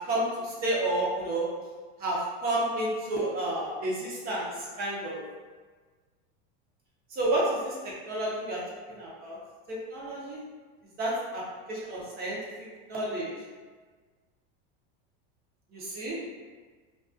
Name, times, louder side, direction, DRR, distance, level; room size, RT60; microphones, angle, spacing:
voice 1, 0.0-1.5 2.0-5.2 7.1-8.6 8.9-9.4 9.7-10.4 11.0-11.4 11.7-12.4 12.9-13.3 15.7-16.2, right 1 dB, 30° right, -5 dB, 0.5 m, -30 dB
2.3 x 2.3 x 2.4 m, 1.4 s
supercardioid pair, 140°, 33 cm